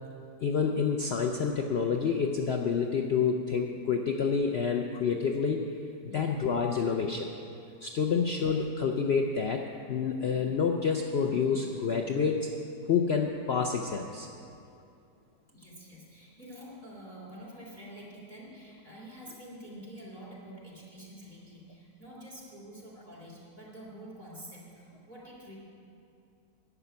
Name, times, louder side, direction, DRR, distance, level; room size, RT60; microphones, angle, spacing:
voice 1, 0.4-5.7 6.1-7.3 7.8-12.5 12.9-14.3, left 6 dB, 70° left, 3 dB, 0.6 m, -28 dB
voice 2, 6.0-6.4 14.3-14.6 15.5-25.6, equal, 25° right, -5 dB, 3.2 m, -47 dB
11.0 x 7.0 x 9.6 m, 2.6 s
omnidirectional pair, 1.9 m